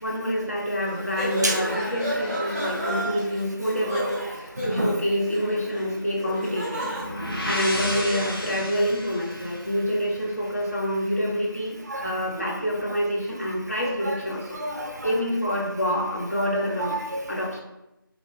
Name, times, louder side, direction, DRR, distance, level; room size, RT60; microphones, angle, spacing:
voice 1, 0.0-6.8 7.4-14.6 15.0-17.0 17.3-17.6, equal, 40° left, -2 dB, 0.7 m, -27 dB
sound 1, 0.8-8.3, equal, 5° right, 0.6 m, -32 dB
voice 2, 4.6-4.9 7.2-7.5 11.9-12.4 13.8-14.2 14.5-15.2 16.4-16.5 16.8-17.3, right 1 dB, 50° right, 2 dB, 0.4 m, -31 dB
sound 2, 6.8-10.6, left 1 dB, 80° left, 0.7 m, -32 dB
3.0 x 3.0 x 2.6 m, 0.91 s
figure-of-eight pair, 175°, 12 cm